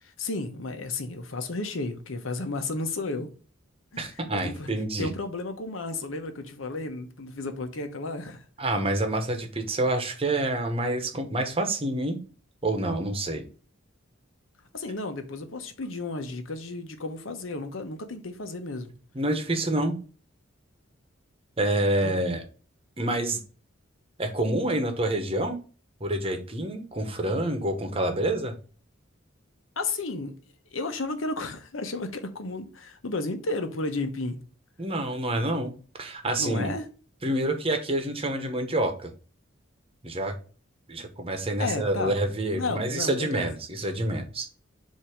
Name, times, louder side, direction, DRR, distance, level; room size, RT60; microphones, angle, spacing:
voice 1, 0.0-3.3 3.9-4.7 5.0-8.4 14.7-18.9 22.0-22.1 29.8-30.3 30.7-34.4 36.4-36.9 41.6-42.2 42.5-43.5, left 2 dB, 75° left, 1.0 m, -33 dB
voice 2, 4.0-5.1 8.6-12.2 12.6-13.4 19.1-20.0 21.6-22.4 23.0-23.4 24.2-25.6 26.0-28.6 34.8-35.7 36.0-36.7 37.2-39.1 40.0-40.3 40.9-44.5, right 1 dB, 30° right, 1.1 m, -27 dB
7.3 x 2.8 x 5.0 m
head